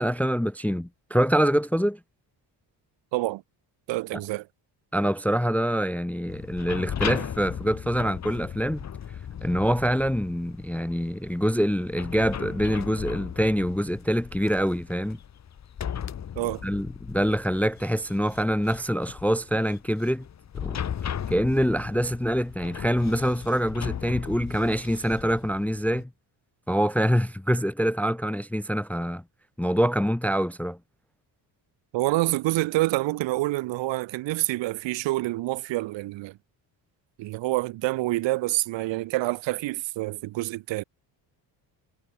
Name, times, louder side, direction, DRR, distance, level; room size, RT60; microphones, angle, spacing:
voice 1, 0.0-2.0 4.9-8.8 9.4-15.2 16.6-20.3 20.6-20.8 21.3-26.1 26.7-29.2 29.6-30.8, equal, 5° left, 0.4 m, -25 dB
voice 2, 3.1-3.4 3.9-4.5 16.3-16.6 31.9-36.4 37.2-40.8, right 18 dB, 85° right, 1.2 m, -27 dB
sound 1, 6.3-26.0, left 8 dB, 40° left, 1.2 m, -37 dB
cardioid pair, 100°, 44 cm